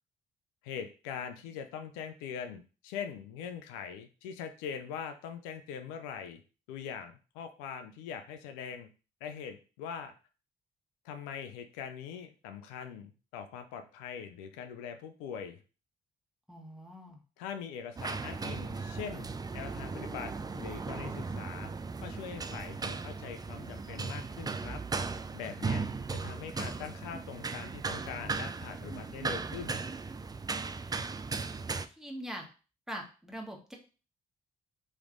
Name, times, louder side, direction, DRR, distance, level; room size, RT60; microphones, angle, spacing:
voice 1, 0.6-6.4 6.7-8.9 9.2-10.1 11.0-15.6 17.4-19.3 19.5-21.7 22.0-24.8 25.3-25.9 26.1-29.9, left 7 dB, 85° left, 7 dB, 0.4 m, -42 dB
voice 2, 16.5-17.2 31.7-32.5 32.9-33.7, equal, ahead, 0 dB, 1.3 m, -43 dB
sound 1, 18.0-31.9, right 4 dB, 20° right, 0.4 m, -37 dB
3.2 x 3.1 x 3.7 m, 0.35 s
hypercardioid pair, 45°, 21 cm